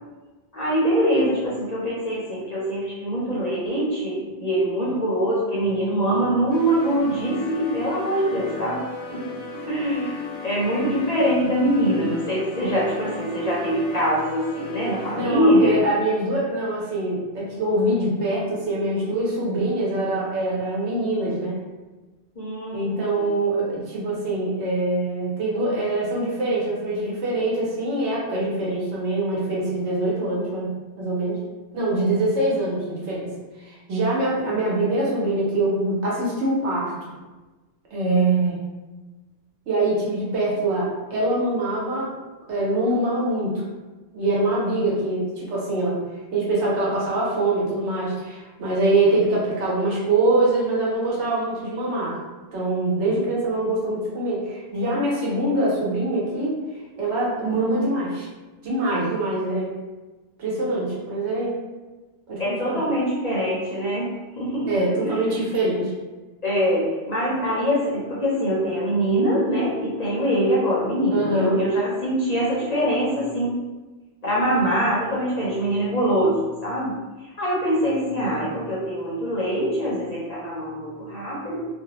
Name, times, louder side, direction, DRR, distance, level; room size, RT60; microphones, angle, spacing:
voice 1, 0.5-8.8 9.1-9.4 9.6-15.8 22.4-23.3 62.4-64.1 64.4-64.7 65.0-65.2 66.4-73.6 74.2-81.7, equal, 45° left, -7 dB, 0.5 m, -23 dB
sound 1, 6.5-15.2, left 3 dB, 80° left, 0.9 m, -36 dB
voice 2, 15.1-21.6 22.7-31.4 31.7-33.3 33.6-37.1 37.9-38.6 39.7-42.1 42.5-43.6 44.1-52.2 52.5-56.6 57.0-58.3 58.6-59.7 60.4-61.5 62.3-62.8 64.7-65.9 71.1-71.6, right 2 dB, 75° right, -5 dB, 1.1 m, -24 dB
2.5 x 2.0 x 2.8 m, 1.2 s
omnidirectional pair, 1.2 m